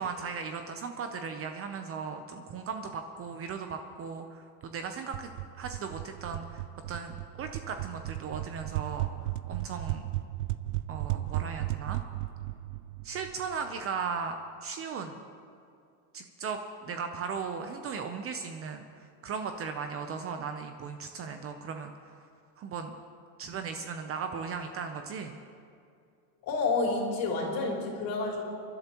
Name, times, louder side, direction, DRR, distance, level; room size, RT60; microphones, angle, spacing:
voice 1, 0.0-10.1 10.9-12.0 13.0-15.2 16.1-22.1 22.6-22.9 23.4-25.4, right 5 dB, 30° right, 6 dB, 0.6 m, -37 dB
sound 1, 5.1-13.8, right 16 dB, 80° right, 0.5 m, -35 dB
voice 2, 26.4-28.5, left 3 dB, 45° left, -2 dB, 3.3 m, -29 dB
29.0 x 12.0 x 3.0 m, 2.4 s
supercardioid pair, 135°, 48 cm